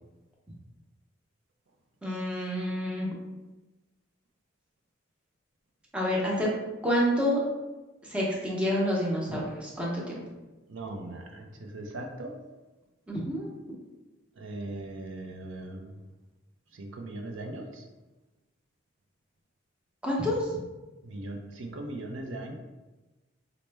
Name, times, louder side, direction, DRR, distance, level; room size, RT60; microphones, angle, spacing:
voice 1, 2.0-3.2 5.9-6.5 6.8-7.4 8.0-10.2 13.1-13.5 20.0-20.6, equal, 5° right, -4 dB, 0.7 m, -28 dB
voice 2, 10.7-12.4 14.4-16.0 16.7-17.9 21.0-22.6, right 2 dB, 75° right, 3 dB, 0.5 m, -39 dB
4.2 x 2.0 x 3.3 m, 1.1 s
head